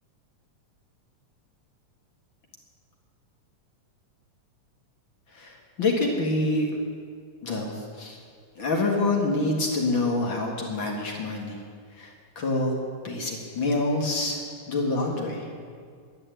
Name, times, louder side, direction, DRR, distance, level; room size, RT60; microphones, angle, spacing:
voice 1, 5.3-6.7 7.4-8.2 8.6-11.6 12.0-12.7 13.0-14.4 14.7-15.4, left 2 dB, 45° left, 0 dB, 2.1 m, -26 dB
11.0 x 11.0 x 9.0 m, 2.1 s
omnidirectional pair, 3.7 m